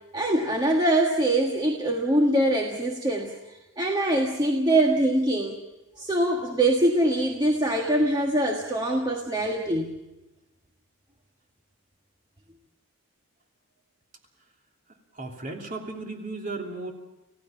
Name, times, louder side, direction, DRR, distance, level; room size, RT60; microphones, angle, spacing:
voice 1, 0.1-5.6 6.0-10.0, right 1 dB, 20° right, 1 dB, 1.6 m, -23 dB
voice 2, 15.1-16.9, right 3 dB, 35° right, 2 dB, 3.0 m, -35 dB
29.5 x 16.5 x 5.8 m, 1.0 s
head